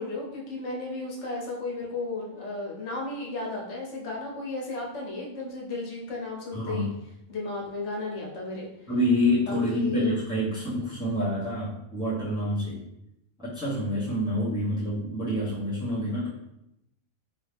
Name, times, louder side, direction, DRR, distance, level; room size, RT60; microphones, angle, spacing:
voice 1, 0.0-6.9 7.3-8.7 9.4-10.1, left 2 dB, 75° left, -2 dB, 1.2 m, -34 dB
voice 2, 6.5-6.9 8.9-12.8 13.4-16.3, left 1 dB, 5° right, -10 dB, 1.0 m, -27 dB
2.9 x 2.8 x 3.3 m, 0.84 s
omnidirectional pair, 1.2 m